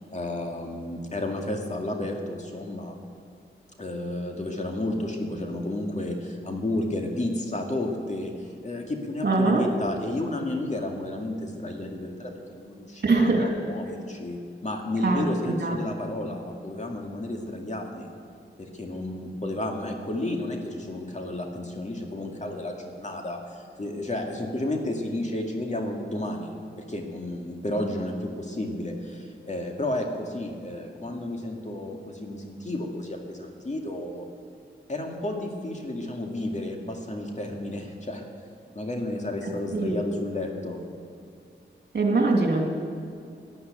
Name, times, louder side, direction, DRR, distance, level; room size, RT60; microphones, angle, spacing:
voice 1, 0.1-3.0 3.8-18.1 18.6-34.3 34.9-38.2 38.7-40.8, left 1 dB, 35° left, 2 dB, 2.3 m, -32 dB
voice 2, 9.2-9.7 13.0-13.5 15.0-15.3 15.6-15.8 39.7-40.0 41.9-42.6, right 3 dB, 55° right, 1 dB, 2.8 m, -22 dB
12.0 x 11.5 x 9.2 m, 2.4 s
cardioid pair, 60°, 20 cm